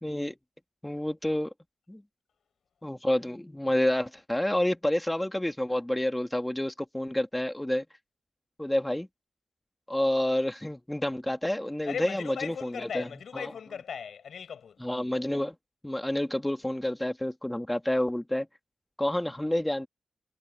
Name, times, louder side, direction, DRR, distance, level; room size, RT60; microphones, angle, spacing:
voice 1, 0.0-0.3 0.8-1.5 1.9-2.0 2.8-7.8 8.6-9.1 9.9-13.1 13.3-13.5 14.8-15.5 15.8-18.5 19.0-19.9, left 1 dB, 10° left, 1.6 m, -29 dB
voice 2, 11.8-14.8, left 7 dB, 80° left, 5.9 m, -38 dB
wide cardioid pair, 125°, 0 cm